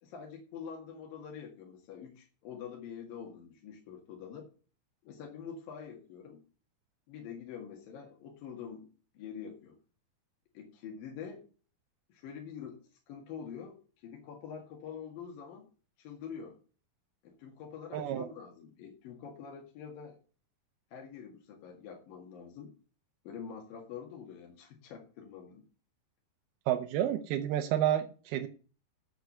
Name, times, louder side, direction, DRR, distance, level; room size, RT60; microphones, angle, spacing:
voice 1, 0.0-4.5 5.0-6.4 7.1-9.8 10.5-11.5 12.1-12.8 13.1-15.7 16.0-16.6 17.2-20.2 20.9-22.7 23.3-25.6, left 7 dB, 70° left, 0 dB, 3.5 m, -46 dB
voice 2, 17.9-18.3 26.7-28.5, right 11 dB, 90° right, 6 dB, 2.8 m, -30 dB
9.2 x 8.0 x 6.7 m, 0.38 s
omnidirectional pair, 4.3 m